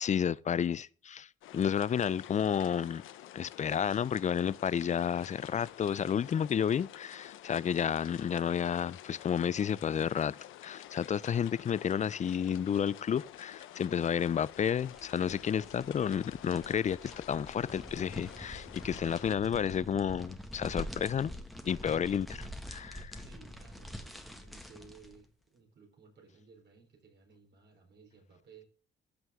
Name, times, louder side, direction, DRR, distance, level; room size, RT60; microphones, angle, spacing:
voice 1, 0.0-3.0 3.3-10.4 10.6-21.3 21.6-22.3 22.7-23.2, left 8 dB, 35° left, 0.4 m, -31 dB
sound 1, 1.4-19.4, left 13 dB, 90° left, 0.8 m, -50 dB
sound 2, 14.5-25.2, equal, ahead, 1.6 m, -46 dB
voice 2, 22.7-28.7, right 5 dB, 60° right, 4.1 m, -58 dB
14.5 x 6.2 x 3.6 m
cardioid pair, 90°, 20 cm